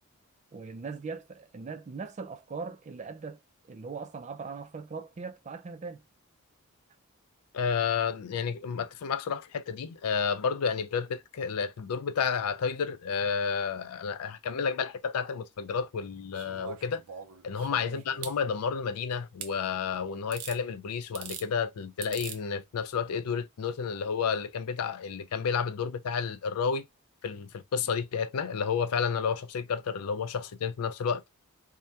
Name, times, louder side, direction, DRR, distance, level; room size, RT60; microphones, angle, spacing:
voice 1, 0.5-3.4 3.7-6.0 17.8-18.0, right 4 dB, 30° right, 0.3 m, -40 dB
voice 2, 7.5-17.0 17.4-26.9 27.2-31.2, left 6 dB, 85° left, 0.4 m, -31 dB
sound 1, 16.3-18.4 19.4-19.5 20.3-20.6 21.0-21.5 22.0-22.4 23.6-23.7, right 8 dB, 80° right, 0.6 m, -42 dB
2.8 x 2.1 x 3.2 m
head